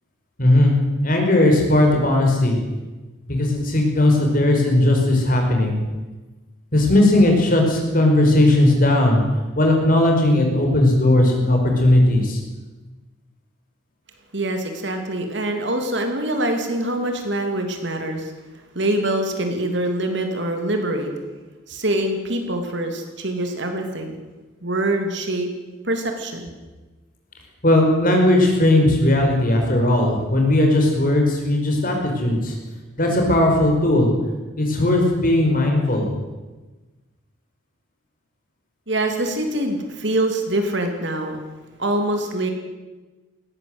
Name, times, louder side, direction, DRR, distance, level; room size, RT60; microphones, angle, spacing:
voice 1, 0.4-0.7 1.0-2.6 3.3-5.8 6.7-9.2 9.5-12.4 27.6-32.5 33.0-34.1 34.6-36.1, left 1 dB, 40° left, 2 dB, 5.1 m, -17 dB
voice 2, 14.3-18.3 18.7-21.1 21.7-24.1 24.6-25.5 25.8-26.5 38.9-41.4 41.8-42.5, right 1 dB, 55° right, 5 dB, 3.0 m, -24 dB
19.5 x 17.0 x 8.1 m, 1.2 s
head